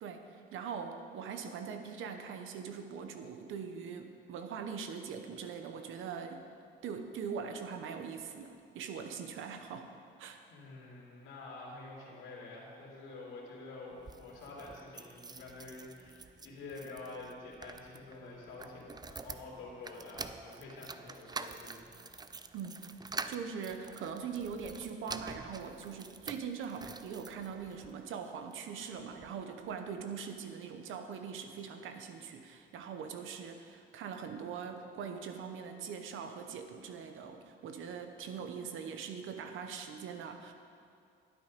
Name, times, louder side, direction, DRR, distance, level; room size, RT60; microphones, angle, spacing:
voice 1, 0.0-6.4 6.8-9.9 10.2-10.4 22.5-22.9 23.3-40.5, right 6 dB, 85° right, 6 dB, 1.0 m, -42 dB
voice 2, 10.5-22.0, left 3 dB, 90° left, -4 dB, 2.8 m, -48 dB
sound 1, 13.9-27.9 28.5-29.4 29.7-29.8 30.0-30.1, right 4 dB, 20° right, 0.4 m, -47 dB
12.0 x 8.5 x 5.3 m, 2.4 s
cardioid pair, 90°, 20 cm